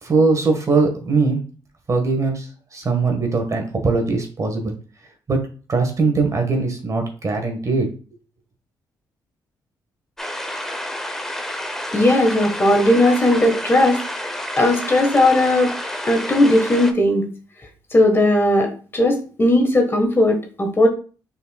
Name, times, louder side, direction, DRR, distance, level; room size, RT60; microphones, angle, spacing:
voice 1, 0.0-1.4 1.9-4.7 5.3-5.4 5.7-7.9, right 3 dB, 40° right, 4 dB, 1.4 m, -20 dB
sound 1, 10.2-16.9, left 1 dB, 5° left, 0.7 m, -29 dB
voice 2, 11.9-14.0 14.6-15.7 16.0-17.2 17.9-20.9, left 1 dB, 25° left, 3 dB, 1.3 m, -17 dB
5.1 x 4.3 x 2.3 m, 0.37 s
supercardioid pair, 60°, 8 cm